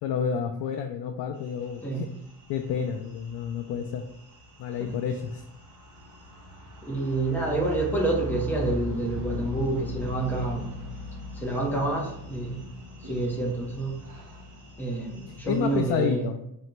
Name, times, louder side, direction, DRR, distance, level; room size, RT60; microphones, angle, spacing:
voice 1, 0.0-2.1 2.5-4.1 4.6-5.4 15.3-16.4, left 7 dB, 75° left, 4 dB, 0.5 m, -30 dB
sound 1, 1.4-16.0, left 2 dB, 50° right, 1.0 m, -40 dB
voice 2, 6.8-10.7 11.3-12.6 13.0-14.0 14.8-16.3, right 2 dB, 5° left, -2 dB, 0.7 m, -28 dB
3.8 x 2.2 x 4.4 m, 0.81 s
cardioid pair, 170°, 40 cm